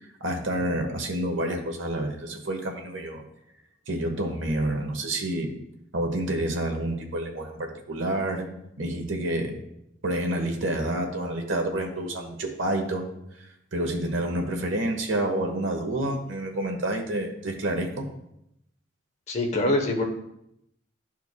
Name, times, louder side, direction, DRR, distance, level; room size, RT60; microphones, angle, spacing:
voice 1, 0.2-3.2 3.9-5.5 5.9-8.5 8.8-9.6 10.0-13.1 13.7-18.1, right 1 dB, 90° right, 3 dB, 1.2 m, -28 dB
voice 2, 19.3-20.0, left 1 dB, 35° left, 2 dB, 0.9 m, -25 dB
12.0 x 4.5 x 2.2 m, 0.79 s
head